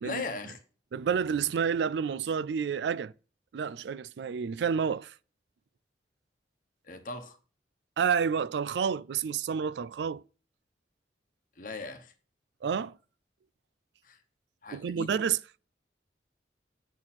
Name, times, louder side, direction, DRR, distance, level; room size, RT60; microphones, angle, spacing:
voice 1, 0.0-0.6 6.8-7.4 11.6-12.1 14.0-14.2 14.6-15.1, left 3 dB, 50° left, 1.1 m, -38 dB
voice 2, 0.9-3.1 3.5-5.1 8.0-10.2 12.6-13.0 14.7-15.4, right 7 dB, 75° right, 0.3 m, -29 dB
7.9 x 4.2 x 4.3 m
head